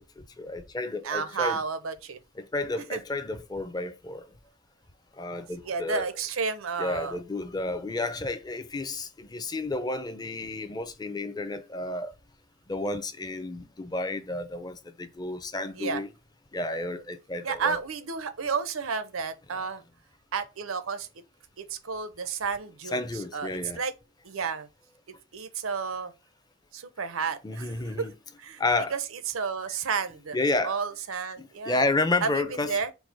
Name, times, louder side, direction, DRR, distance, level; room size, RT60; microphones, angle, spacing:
voice 1, 0.4-1.6 2.4-4.3 5.2-6.1 6.8-12.1 12.7-16.1 16.5-17.8 22.9-23.8 27.4-28.1 28.6-28.9 30.3-30.8 31.4-32.7, left 2 dB, 20° left, 0.5 m, -31 dB
voice 2, 1.0-2.2 2.9-3.0 5.6-7.2 15.8-16.0 17.4-19.8 20.3-21.1 21.6-23.9 24.2-24.7 25.3-26.1 26.7-28.1 28.4-28.6 28.9-30.4 30.6-31.9 32.2-32.9, right 5 dB, 90° right, 0.7 m, -31 dB
4.6 x 2.0 x 4.0 m
head